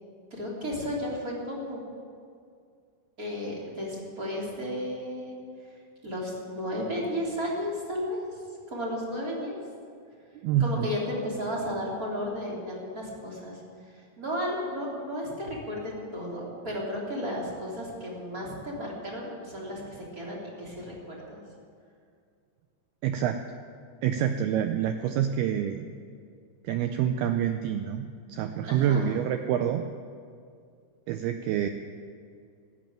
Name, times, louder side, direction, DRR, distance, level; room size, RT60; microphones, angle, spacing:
voice 1, 0.3-1.8 3.2-5.4 6.0-8.2 8.7-9.6 10.6-13.6 14.2-21.4 28.6-29.2, equal, 20° right, -4 dB, 3.1 m, -33 dB
voice 2, 10.4-10.9 23.0-23.4 24.0-25.9 26.6-29.8 31.1-31.7, right 9 dB, 90° right, 7 dB, 2.2 m, -27 dB
14.0 x 11.0 x 9.0 m, 2.2 s
omnidirectional pair, 5.2 m